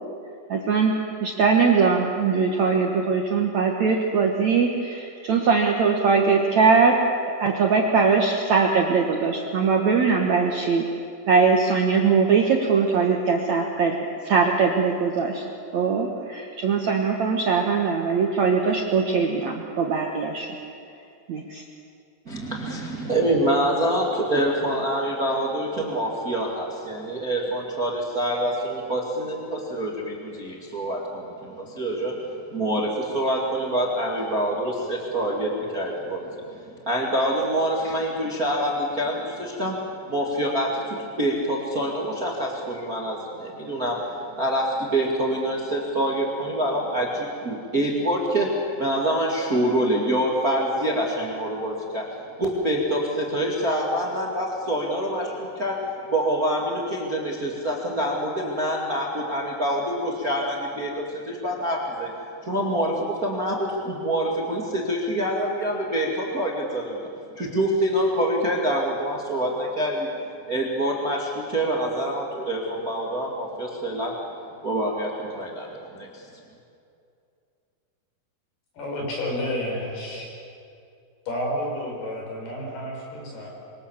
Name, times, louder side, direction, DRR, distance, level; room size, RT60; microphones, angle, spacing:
voice 1, 0.5-0.9 1.2-7.0 7.4-10.8 11.3-14.0 14.2-15.4 15.7-20.5 21.3-21.6, right 5 dB, 60° right, 2 dB, 2.0 m, -21 dB
voice 2, 22.3-36.3 36.9-39.8 40.1-44.0 44.4-52.1 52.4-55.8 56.1-62.1 62.4-67.1 67.4-70.1 70.5-74.1 74.6-76.3, right 1 dB, 30° right, -1 dB, 2.0 m, -26 dB
voice 3, 78.7-80.3 81.3-83.5, left 1 dB, 65° left, -1 dB, 7.5 m, -30 dB
27.0 x 23.5 x 7.3 m, 2.6 s
omnidirectional pair, 4.9 m